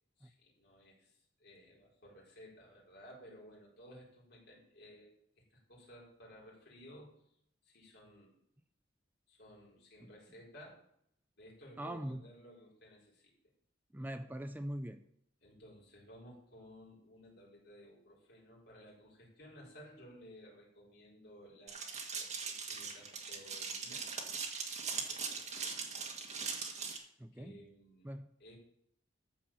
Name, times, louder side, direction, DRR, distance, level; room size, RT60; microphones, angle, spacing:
voice 1, 0.2-5.1 5.5-7.2 7.6-8.3 9.3-10.8 11.4-13.3 15.4-24.1 25.0-25.8 27.3-28.1 28.4-28.6, equal, 60° left, -4 dB, 4.9 m, -57 dB
voice 2, 11.8-12.2 13.9-15.0 27.2-27.6 28.0-28.3, right 1 dB, 10° right, 9 dB, 0.5 m, -42 dB
sound 1, 21.7-27.0, right 5 dB, 40° right, 1.8 m, -40 dB
13.5 x 5.1 x 7.3 m, 0.71 s
head